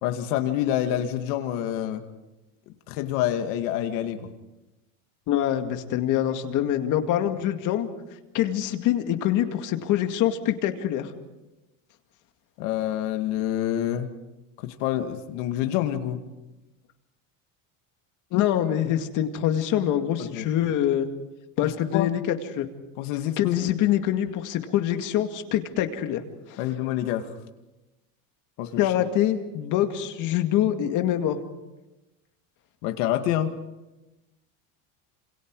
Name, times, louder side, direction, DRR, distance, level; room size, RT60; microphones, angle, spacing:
voice 1, 0.0-2.0 2.7-4.3 12.6-14.1 14.6-16.2 20.2-20.5 21.6-22.1 23.0-23.7 26.6-27.3 28.6-28.9 32.8-33.5, left 12 dB, 70° left, 6 dB, 2.3 m, -27 dB
voice 2, 5.3-7.9 8.3-11.1 18.3-21.1 21.6-22.7 23.4-26.2 26.5-26.6 28.8-31.4, left 11 dB, 50° left, 6 dB, 2.2 m, -25 dB
28.0 x 27.0 x 4.8 m, 1.0 s
cardioid pair, 150°, 39 cm